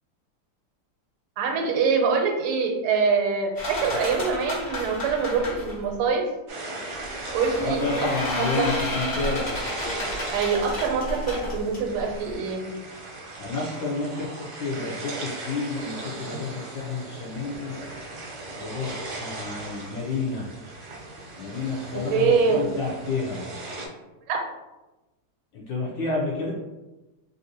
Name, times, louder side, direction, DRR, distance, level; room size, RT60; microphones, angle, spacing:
voice 1, 1.4-6.3 7.3-8.7 10.3-12.6 21.9-22.7 24.3-24.4, right 5 dB, 90° right, 2 dB, 1.5 m, -24 dB
sound 1, 3.6-5.9 6.9-12.3, left 1 dB, 45° left, 0.7 m, -32 dB
sound 2, 6.5-23.9, right 2 dB, 65° right, 1.0 m, -38 dB
voice 2, 7.6-9.7 13.4-14.3 14.6-17.7 18.6-20.5 21.4-23.5 25.5-26.5, left 3 dB, 70° left, -4 dB, 1.2 m, -30 dB
3.4 x 2.6 x 2.7 m, 1.1 s
omnidirectional pair, 2.4 m